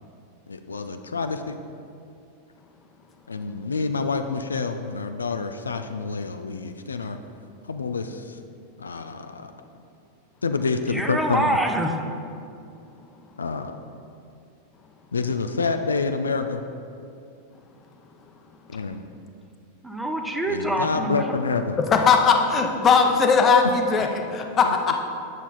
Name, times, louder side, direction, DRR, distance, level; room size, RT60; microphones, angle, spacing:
voice 1, 0.5-1.6 3.3-7.2 7.7-8.4 8.8-9.5 10.4-11.6 13.4-13.7 15.1-16.6 18.7-19.0 20.5-21.8 24.6-24.7, left 4 dB, 75° left, 7 dB, 0.4 m, -27 dB
voice 2, 10.9-12.0 19.8-21.4, right 1 dB, 5° right, 3 dB, 0.7 m, -25 dB
voice 3, 21.9-25.0, left 5 dB, 25° left, 4 dB, 0.9 m, -19 dB
9.2 x 7.1 x 4.0 m, 2.5 s
figure-of-eight pair, 90°, 0 cm